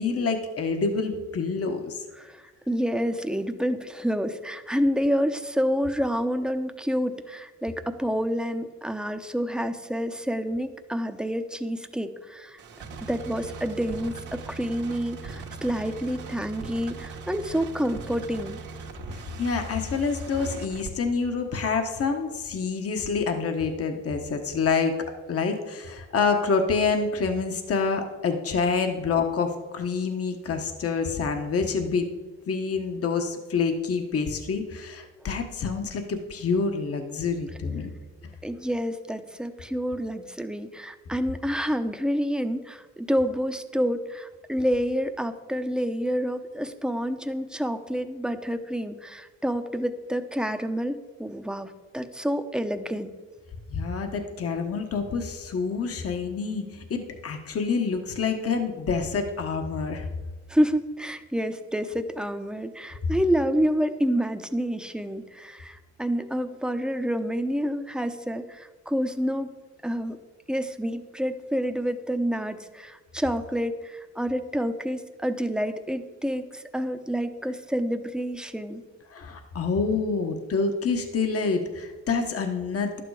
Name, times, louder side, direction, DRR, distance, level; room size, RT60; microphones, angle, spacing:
voice 1, 0.0-2.0 19.1-25.0 25.3-32.1 32.5-37.9 53.7-60.1 79.1-83.0, left 5 dB, 50° left, 5 dB, 1.3 m, -27 dB
voice 2, 2.2-12.6 13.1-18.6 38.4-53.1 60.5-69.5 69.8-70.2 70.5-78.8, equal, 5° right, 7 dB, 0.8 m, -28 dB
sound 1, 12.6-20.9, right 4 dB, 80° right, 1.5 m, -40 dB
11.5 x 9.0 x 4.8 m, 1.3 s
cardioid pair, 90°, 30 cm